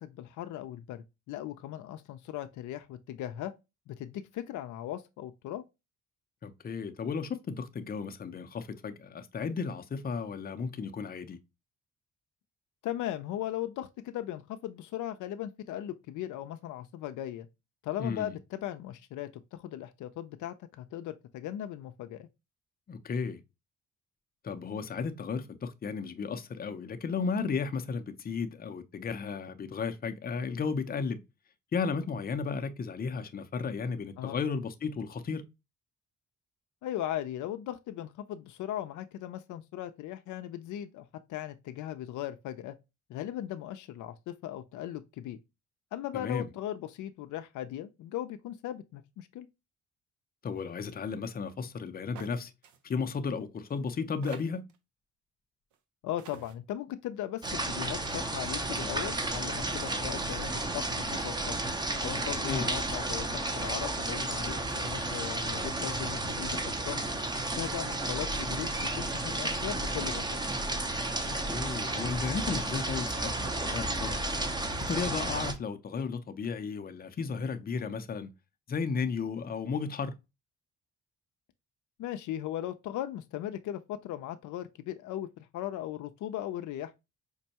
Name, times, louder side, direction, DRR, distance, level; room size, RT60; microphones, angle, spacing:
voice 1, 0.0-3.5 3.9-5.6 12.8-17.5 17.8-22.3 34.2-34.4 36.8-42.8 43.1-45.4 45.9-49.5 56.0-60.5 60.7-61.5 62.0-63.3 63.5-67.0 67.5-70.4 82.0-87.0, left 12 dB, 75° left, 0.5 m, -38 dB
voice 2, 6.4-11.4 18.0-18.4 22.9-23.4 24.4-31.2 31.7-35.4 46.1-46.5 50.4-52.5 52.8-54.7 62.4-62.7 71.5-74.3 74.9-78.3 78.7-80.2, left 5 dB, 30° left, 0.6 m, -34 dB
sound 1, 52.2-52.4 52.6-52.8 53.7-53.8 54.2-54.8 55.7-55.8 56.2-56.5, right 8 dB, 75° right, 0.7 m, -47 dB
sound 2, 57.4-75.5, right 2 dB, 15° right, 0.6 m, -32 dB
5.2 x 2.2 x 2.8 m
cardioid pair, 90°, 30 cm